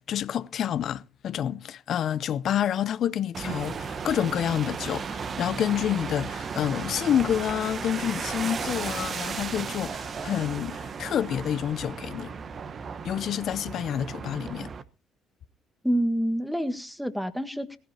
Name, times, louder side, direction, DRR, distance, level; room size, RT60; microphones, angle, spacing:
voice 1, 0.1-12.3 13.0-14.7, left 10 dB, 60° left, 0.6 m, -28 dB
sound 1, 3.3-14.8, right 6 dB, 45° right, 1.1 m, -35 dB
voice 2, 15.8-17.8, equal, ahead, 1.6 m, -27 dB
19.0 x 16.0 x 2.8 m
hypercardioid pair, 55°, 0 cm